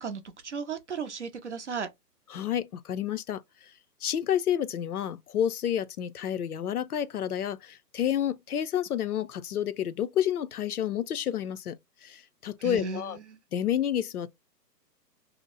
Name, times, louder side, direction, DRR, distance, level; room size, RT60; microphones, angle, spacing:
voice 1, 0.0-1.9 12.6-13.0 13.3-13.4, right 5 dB, 45° right, 0.5 m, -35 dB
voice 2, 2.3-3.7 4.0-11.8 12.0-13.2 13.5-14.3, left 10 dB, 65° left, 0.5 m, -30 dB
2.8 x 2.0 x 3.8 m
hypercardioid pair, 160°, 50 cm